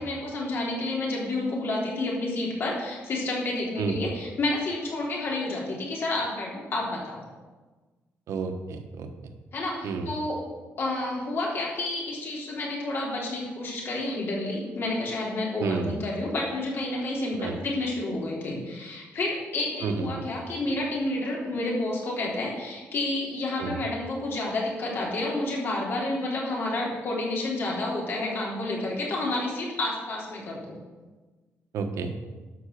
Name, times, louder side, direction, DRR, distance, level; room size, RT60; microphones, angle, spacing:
voice 1, 0.0-7.2 9.5-10.4 10.8-30.8, left 2 dB, 50° left, -3 dB, 3.5 m, -30 dB
voice 2, 3.8-4.1 8.3-9.1 9.8-10.1 15.6-16.0 17.3-17.6 19.8-20.3 23.6-23.8 31.7-32.1, right 5 dB, 85° right, 5 dB, 1.2 m, -30 dB
12.5 x 5.9 x 6.7 m, 1.3 s
cardioid pair, 150°, 5 cm